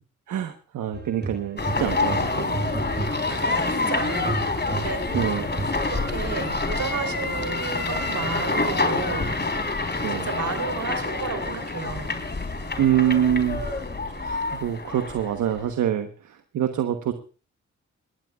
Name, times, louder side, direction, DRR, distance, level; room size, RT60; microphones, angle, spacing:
voice 1, 0.3-2.7 3.0-3.2 5.1-5.6 10.0-10.3 12.8-13.7 14.1-17.1, right 10 dB, 90° right, 7 dB, 1.2 m, -26 dB
sound 1, 0.9-4.0 4.3-5.9, right 2 dB, 35° right, 5.3 m, -33 dB
sound 2, 1.6-15.7, left 3 dB, 35° left, 3.8 m, -27 dB
voice 2, 3.3-4.4 4.7-5.2 5.8-9.4 10.1-12.1, right 5 dB, 75° right, 9 dB, 3.5 m, -32 dB
20.5 x 18.0 x 2.4 m, 0.36 s
supercardioid pair, 50°, 30 cm